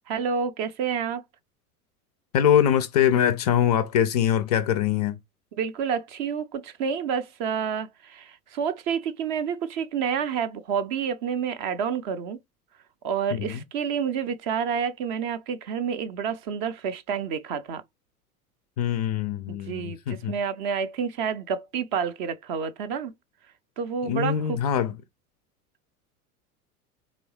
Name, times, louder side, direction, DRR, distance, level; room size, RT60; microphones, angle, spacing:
voice 1, 0.1-1.2 5.6-12.4 13.0-17.8 19.5-23.1 23.8-24.6, right 7 dB, 35° right, 0.5 m, -29 dB
voice 2, 2.3-5.2 13.3-13.6 18.8-20.4 24.0-24.9, left 9 dB, 30° left, 0.3 m, -23 dB
4.0 x 3.3 x 3.0 m
figure-of-eight pair, 85°, 45 cm